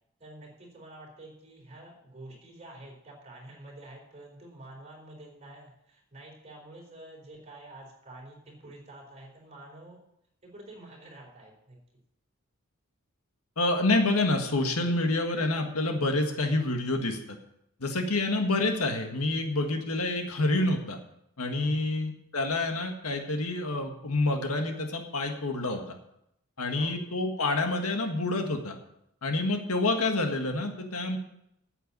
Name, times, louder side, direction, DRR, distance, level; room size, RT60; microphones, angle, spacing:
voice 1, 0.2-10.0 10.4-11.8 21.5-21.9 26.6-27.1, right 1 dB, 30° right, -1 dB, 4.1 m, -48 dB
voice 2, 13.6-17.2 17.8-21.0 21.4-26.0 26.6-28.8 29.2-31.2, left 2 dB, 75° left, 4 dB, 1.8 m, -28 dB
9.4 x 8.3 x 8.4 m, 0.78 s
head